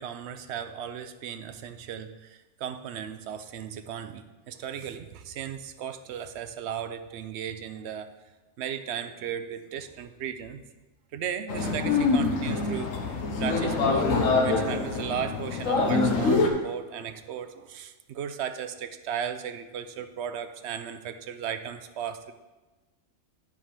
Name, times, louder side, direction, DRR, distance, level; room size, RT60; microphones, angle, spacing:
voice 1, 0.0-8.1 8.6-10.6 11.1-12.9 13.4-14.1 14.4-22.3, right 8 dB, 65° right, 10 dB, 0.8 m, -36 dB
sound 1, 11.5-16.5, left 3 dB, 80° left, 1.3 m, -25 dB
8.7 x 5.0 x 5.6 m, 1.2 s
omnidirectional pair, 1.3 m